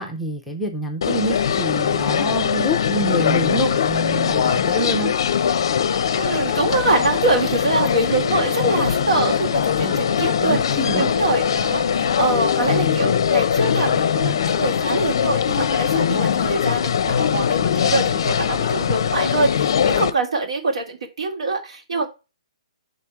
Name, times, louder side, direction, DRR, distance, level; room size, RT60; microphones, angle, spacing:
voice 1, 0.0-5.1 9.8-10.1 10.4-11.0, right 1 dB, ahead, 0.6 m, -26 dB
sound 1, 1.0-20.1, left 8 dB, 45° left, 0.5 m, -21 dB
voice 2, 6.1-10.6 11.0-22.1, right 3 dB, 85° right, 2.5 m, -24 dB
4.9 x 3.9 x 5.7 m
hypercardioid pair, 180°, 3 cm